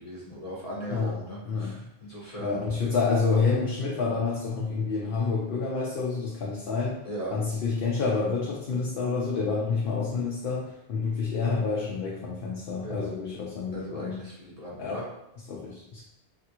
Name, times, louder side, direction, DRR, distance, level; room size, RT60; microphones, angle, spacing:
voice 1, 0.0-1.8 2.1-2.6 7.0-7.3 12.8-13.1 13.7-15.0, right 1 dB, 40° left, -6 dB, 0.9 m, -38 dB
voice 2, 2.4-7.0 7.3-14.2 14.8-15.0 15.5-16.0, left 4 dB, 70° left, -4 dB, 0.8 m, -28 dB
3.4 x 2.4 x 2.9 m, 0.83 s
omnidirectional pair, 1.1 m